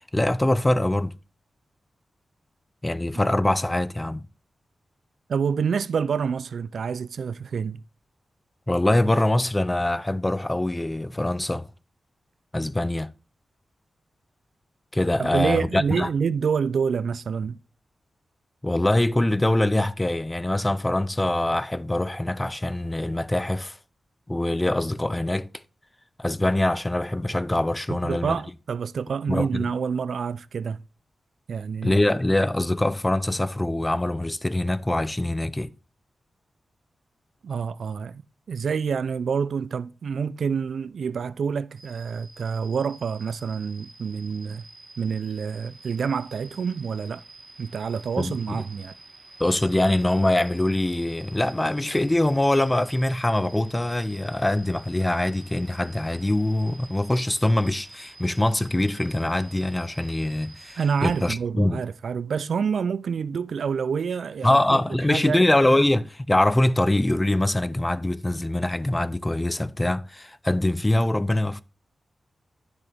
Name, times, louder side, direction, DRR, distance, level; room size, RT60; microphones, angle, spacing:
voice 1, 0.1-1.1 2.8-4.3 8.7-11.7 12.5-13.1 14.9-16.1 18.6-23.8 24.3-25.5 26.2-28.4 29.3-29.7 31.8-35.7 48.2-48.6 49.4-61.8 64.4-71.6, left 1 dB, 15° left, 0.4 m, -23 dB
voice 2, 5.3-7.8 15.2-17.6 27.9-30.8 31.5-32.0 37.4-38.2 38.5-44.7 45.0-47.2 47.6-48.9 60.8-64.8 65.1-65.4, right 6 dB, 80° right, 0.4 m, -27 dB
sound 1, 41.8-61.4, right 2 dB, 25° right, 1.7 m, -49 dB
10.5 x 6.1 x 3.4 m
wide cardioid pair, 100°, 0 cm